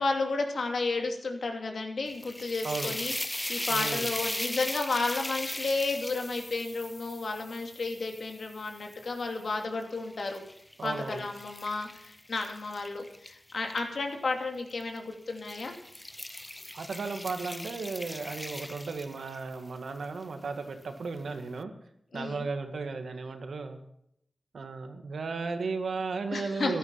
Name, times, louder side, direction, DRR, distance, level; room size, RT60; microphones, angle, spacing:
voice 1, 0.0-3.1 3.5-10.4 10.8-15.7 22.1-22.5 26.3-26.8, left 3 dB, 70° left, 3 dB, 2.8 m, -32 dB
sound 1, 2.1-9.3 9.8-13.8 14.7-15.0 15.4-19.5, left 1 dB, 15° left, 0.4 m, -38 dB
voice 2, 2.6-2.9 3.7-4.1 10.8-11.2 16.7-21.7 22.1-23.8 24.5-26.8, right 4 dB, 85° right, 7 dB, 1.8 m, -35 dB
14.5 x 12.0 x 5.6 m, 0.73 s
wide cardioid pair, 85°, 0 cm